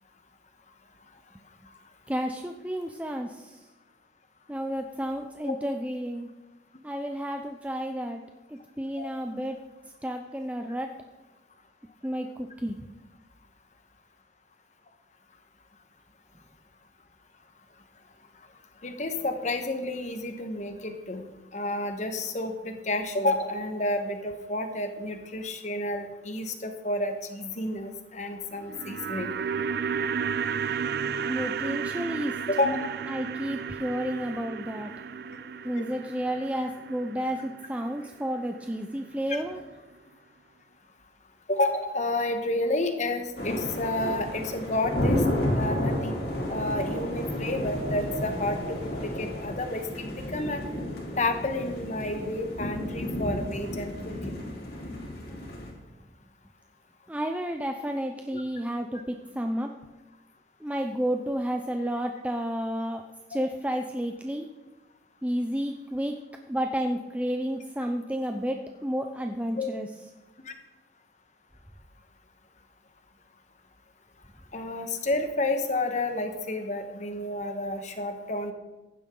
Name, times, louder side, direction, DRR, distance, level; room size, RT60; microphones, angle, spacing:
voice 1, 2.1-3.6 4.5-6.3 6.8-8.2 8.5-9.6 10.0-10.9 12.0-12.8 31.2-32.4 33.1-34.9 35.6-39.6 45.2-45.3 57.1-59.7 60.6-63.0 63.3-64.5 65.2-66.2 66.5-69.9, equal, 10° right, 4 dB, 0.6 m, -31 dB
voice 2, 18.8-21.2 21.5-29.3 32.5-32.9 35.3-35.4 35.8-35.9 41.5-45.2 45.6-46.1 46.5-50.6 51.2-53.9 58.3-58.4 69.6-69.7 70.5-70.6 74.5-78.5, left 2 dB, 40° left, 6 dB, 1.4 m, -30 dB
sound 1, 28.5-38.8 39.1-39.2, right 6 dB, 55° right, 0.3 m, -33 dB
sound 2, 43.4-55.7, left 1 dB, 60° left, 3.5 m, -32 dB
15.5 x 11.0 x 3.9 m, 1.1 s
head